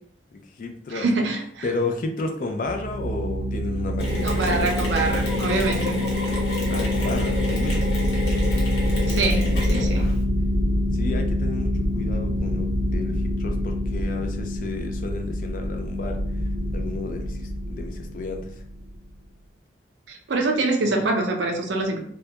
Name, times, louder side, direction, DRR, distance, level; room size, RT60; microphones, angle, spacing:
voice 1, 0.3-1.1 1.6-4.6 6.7-7.9 10.9-16.2 16.7-18.5, left 3 dB, 45° left, 4 dB, 0.4 m, -32 dB
voice 2, 0.9-1.7 4.2-6.0 9.1-10.1 20.1-22.0, right 3 dB, 85° right, 3 dB, 0.5 m, -25 dB
sound 1, 2.7-18.9, left 1 dB, 65° right, 0.8 m, -26 dB
Mechanisms, 4.0-10.2, left 1 dB, 75° left, 0.9 m, -29 dB
2.2 x 2.2 x 2.7 m, 0.63 s
head